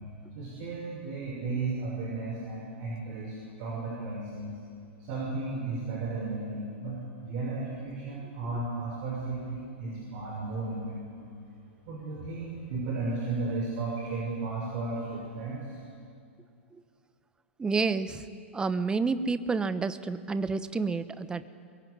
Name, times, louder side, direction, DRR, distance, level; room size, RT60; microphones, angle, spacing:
voice 1, 0.3-4.6 5.0-11.3 11.9-15.8, right 3 dB, 45° right, -3 dB, 6.2 m, -34 dB
voice 2, 17.6-18.2 18.5-21.5, right 4 dB, 10° right, 13 dB, 1.1 m, -29 dB
23.5 x 22.0 x 9.7 m, 2.3 s
figure-of-eight pair, 105°, 7 cm